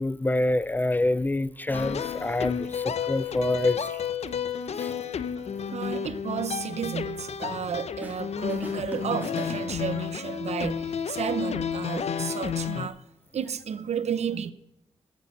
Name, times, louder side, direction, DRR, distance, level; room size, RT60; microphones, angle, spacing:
voice 1, 0.0-4.0 4.8-4.9, left 1 dB, 15° left, 0.3 m, -27 dB
sound 1, 1.7-12.9, left 7 dB, 75° left, 0.7 m, -31 dB
voice 2, 5.7-13.0 13.3-14.5, right 8 dB, 80° right, 0.7 m, -32 dB
sound 2, 7.4-8.2 8.5-10.2, right 1 dB, 15° right, 2.0 m, -42 dB
14.0 x 7.4 x 6.5 m
wide cardioid pair, 115°, 11 cm